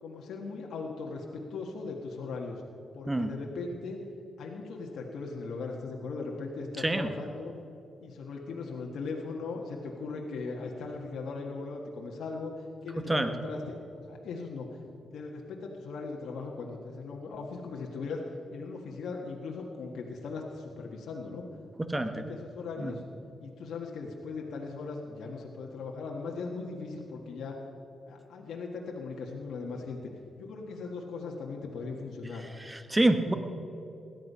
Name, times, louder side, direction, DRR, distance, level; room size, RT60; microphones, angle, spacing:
voice 1, 0.0-2.6 2.9-4.0 4.4-7.5 8.0-12.5 12.8-14.7 15.0-18.2 18.5-21.4 22.0-23.0 23.4-27.6 28.1-30.0 30.4-32.4, left 4 dB, 80° left, -1 dB, 1.6 m, -39 dB
voice 2, 21.8-22.2 22.8-22.9 32.6-33.3, right 1 dB, 15° right, 8 dB, 1.2 m, -27 dB
17.0 x 12.0 x 5.6 m, 2.9 s
cardioid pair, 65°, 0 cm